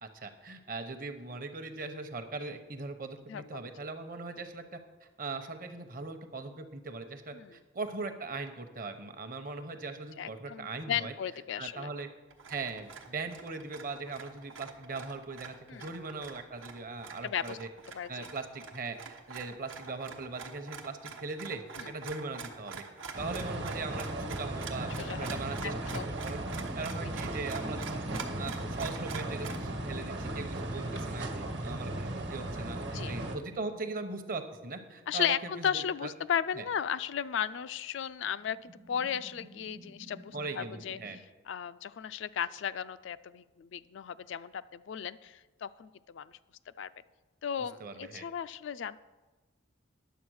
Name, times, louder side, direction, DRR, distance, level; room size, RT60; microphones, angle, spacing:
voice 1, 0.0-4.8 5.2-11.1 11.6-12.1 12.5-17.7 18.1-22.8 23.2-26.4 26.7-28.0 28.4-32.8 33.1-35.8 36.6-36.7 40.3-41.2 47.8-48.2, right 3 dB, 45° right, 8 dB, 0.9 m, -40 dB
voice 2, 3.3-3.6 7.3-7.6 10.2-11.9 15.7-15.9 17.2-17.6 17.9-18.3 21.8-21.9 25.0-26.1 27.0-27.1 30.8-31.0 32.9-33.2 35.1-41.0 41.5-46.4 46.8-46.9 47.4-49.0, left 8 dB, 70° left, 14 dB, 0.3 m, -35 dB
sound 1, 12.3-29.6, right 5 dB, 80° right, 1.1 m, -46 dB
sound 2, 23.1-33.4, right 1 dB, 60° right, 1.3 m, -36 dB
sound 3, 26.4-30.3 30.8-30.9 33.1-37.3 37.8-37.9 38.4-41.2, right 1 dB, 20° right, 0.4 m, -53 dB
10.0 x 7.6 x 6.3 m, 1.2 s
head